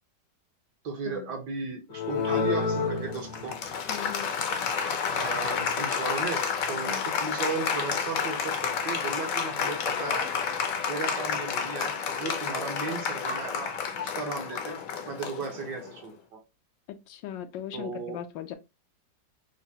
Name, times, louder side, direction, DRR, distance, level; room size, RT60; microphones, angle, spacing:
voice 1, 0.8-3.6 5.0-10.3 10.9-14.8 15.0-16.4 17.7-18.2, right 4 dB, 70° right, 1.6 m, -35 dB
Applause, 1.9-16.0, left 6 dB, 65° left, 0.9 m, -30 dB
voice 2, 3.9-4.3 6.9-7.1 16.9-18.6, left 10 dB, 85° left, 1.3 m, -39 dB
4.9 x 2.2 x 2.7 m
omnidirectional pair, 2.0 m